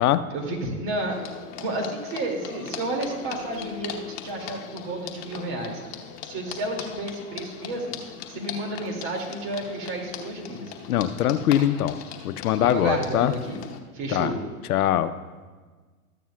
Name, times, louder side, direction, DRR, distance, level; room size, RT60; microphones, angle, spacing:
voice 1, 0.3-8.0 8.3-10.8 12.6-13.6 13.9-14.4, right 2 dB, 45° right, 1 dB, 2.4 m, -31 dB
sound 1, 1.1-13.8, left 8 dB, 45° left, 1.1 m, -40 dB
voice 2, 10.9-12.0 12.2-13.3 14.1-14.3 14.7-15.1, left 11 dB, 75° left, 12 dB, 0.6 m, -22 dB
14.0 x 9.3 x 2.3 m, 1.4 s
hypercardioid pair, 120°, 45 cm